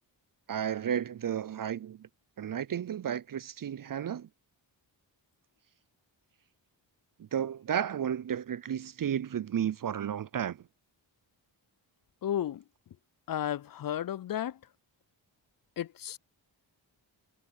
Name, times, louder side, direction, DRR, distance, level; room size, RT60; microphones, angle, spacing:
voice 1, 0.5-2.1 2.4-4.3 7.2-10.6, right 9 dB, 45° right, 0.5 m, -33 dB
voice 2, 12.2-12.6 13.3-14.6 15.8-16.2, left 10 dB, 45° left, 0.5 m, -33 dB
cardioid pair, 45°, 48 cm